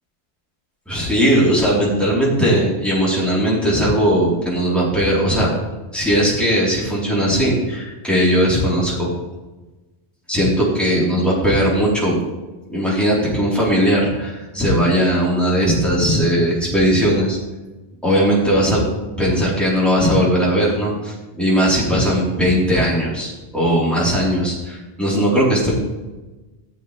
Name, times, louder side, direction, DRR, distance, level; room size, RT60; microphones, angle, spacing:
voice 1, 0.9-5.5 5.9-9.1 10.3-12.2 12.7-17.4 18.0-18.8 19.2-25.7, equal, ahead, -7 dB, 4.3 m, -18 dB
15.5 x 7.7 x 3.5 m, 1.1 s
omnidirectional pair, 1.2 m